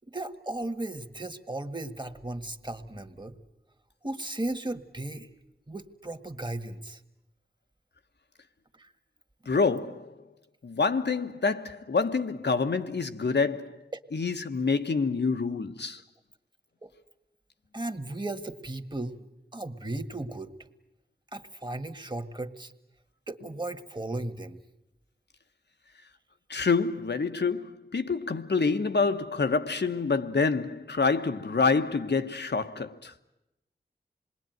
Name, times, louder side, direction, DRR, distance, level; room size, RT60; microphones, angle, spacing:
voice 1, 0.1-3.4 4.0-5.3 5.7-7.0 8.8-8.9 13.9-14.0 16.8-16.9 17.7-19.2 19.5-20.5 21.3-22.7 23.3-24.6, right 2 dB, 25° right, 1.8 m, -36 dB
voice 2, 9.5-10.1 10.6-13.7 14.1-16.0 26.5-33.1, left 4 dB, 75° left, 1.2 m, -27 dB
27.0 x 21.0 x 9.3 m
wide cardioid pair, 45°, 18 cm